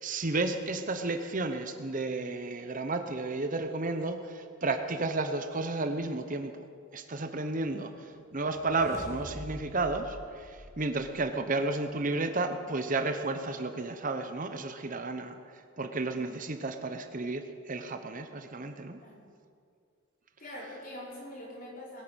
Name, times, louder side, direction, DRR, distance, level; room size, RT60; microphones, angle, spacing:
voice 1, 0.0-6.6 6.9-7.9 8.3-15.3 15.8-19.0, right 3 dB, 35° right, 7 dB, 0.8 m, -32 dB
sound 1, 8.3-11.6, equal, 10° right, 1.9 m, -46 dB
voice 2, 19.0-19.3 20.4-22.0, left 1 dB, 40° left, -4 dB, 3.9 m, -44 dB
20.0 x 9.4 x 6.2 m, 2.2 s
head